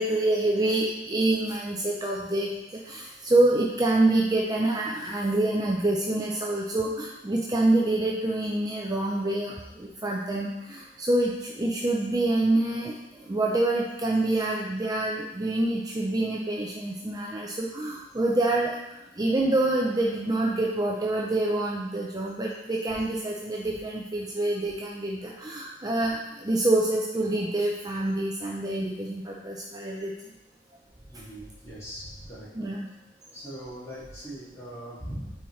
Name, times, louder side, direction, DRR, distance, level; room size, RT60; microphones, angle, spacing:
voice 1, 0.0-2.5 2.9-18.8 19.2-30.1 32.5-32.9, right 2 dB, 20° right, -2 dB, 0.5 m, -26 dB
voice 2, 31.1-32.5 33.3-35.3, equal, 15° left, -9 dB, 2.4 m, -40 dB
9.1 x 4.3 x 3.2 m, 0.98 s
head